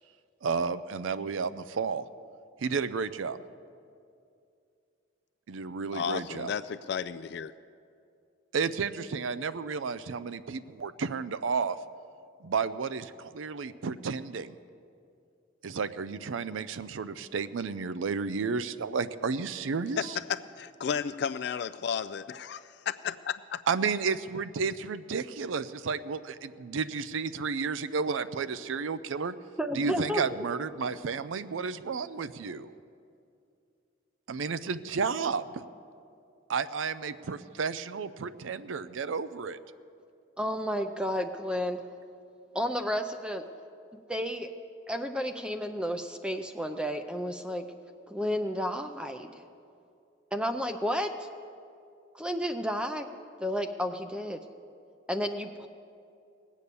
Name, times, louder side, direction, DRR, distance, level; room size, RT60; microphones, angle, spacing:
voice 1, 0.4-2.1 2.6-3.4 5.5-6.5 8.5-11.8 12.4-14.6 15.6-20.2 23.7-29.4 29.7-32.7 34.3-35.6 36.5-39.6, right 5 dB, 85° right, 14 dB, 0.5 m, -32 dB
voice 2, 5.9-7.5 20.0-23.6, left 7 dB, 55° left, 12 dB, 0.3 m, -33 dB
voice 3, 29.6-30.2 40.4-41.8 42.5-43.4 44.1-44.5 44.9-47.7 48.1-49.4 50.3-51.3 52.1-53.1 53.4-54.4 55.1-55.7, equal, 5° right, 6 dB, 0.4 m, -31 dB
18.5 x 8.3 x 6.8 m, 2.5 s
head